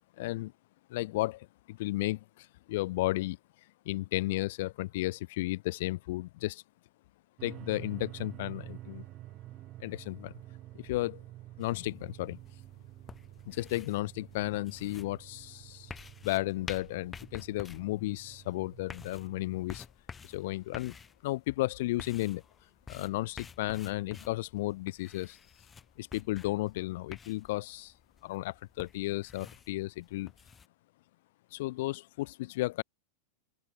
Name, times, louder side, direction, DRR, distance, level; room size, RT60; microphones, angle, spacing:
voice 1, 0.2-0.5 0.9-3.4 3.9-6.6 7.4-9.0 9.8-10.3 10.7-11.2 11.6-12.4 13.5-15.9 16.2-19.8 20.2-20.9 21.2-22.4 22.9-25.4 26.0-27.9 28.2-30.3 31.5-32.8, left 18 dB, 50° left, 0.9 m, -34 dB
sound 1, 7.4-19.7, right 15 dB, 35° right, 4.5 m, -49 dB
sound 2, 11.6-30.7, left 6 dB, 15° left, 4.9 m, -50 dB
open air
figure-of-eight pair, 90°, 0 cm